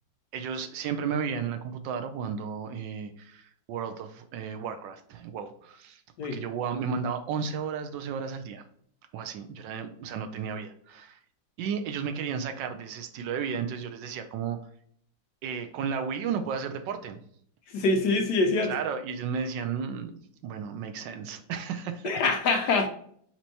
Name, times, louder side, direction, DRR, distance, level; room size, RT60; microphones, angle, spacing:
voice 1, 0.3-6.0 6.3-8.6 9.1-11.2 11.6-14.6 15.4-17.2 18.6-22.0, right 6 dB, 80° right, 1.2 m, -33 dB
voice 2, 17.7-18.7 22.0-22.9, left 3 dB, 70° left, 1.2 m, -24 dB
4.4 x 4.4 x 2.7 m
omnidirectional pair, 2.0 m